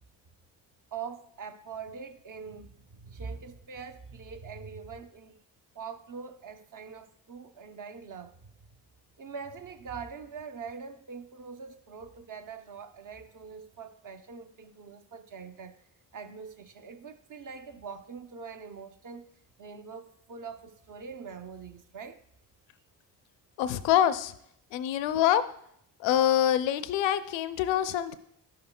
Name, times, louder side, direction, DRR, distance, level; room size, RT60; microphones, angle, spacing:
voice 1, 0.9-5.4 5.7-8.5 9.2-15.8 16.1-19.3 19.6-22.2, right 5 dB, 45° right, 0.8 m, -43 dB
voice 2, 23.6-24.3 24.7-25.4 26.0-28.2, left 11 dB, 75° left, 0.5 m, -25 dB
11.5 x 5.6 x 2.2 m
supercardioid pair, 45°, 45 cm